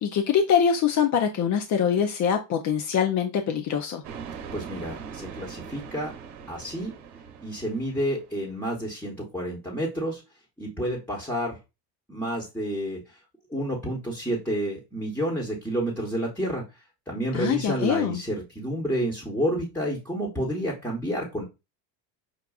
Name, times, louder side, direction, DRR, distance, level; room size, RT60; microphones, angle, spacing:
voice 1, 0.0-4.0 17.3-18.2, left 7 dB, 40° left, 0.5 m, -24 dB
sound 1, 4.0-8.5, right 6 dB, 90° right, 0.9 m, -41 dB
voice 2, 4.5-6.1 6.5-6.9 7.4-10.2 10.6-11.6 12.1-13.0 13.5-16.6 17.1-21.4, equal, 5° left, 1.0 m, -29 dB
6.1 x 2.4 x 2.3 m
supercardioid pair, 100°, 48 cm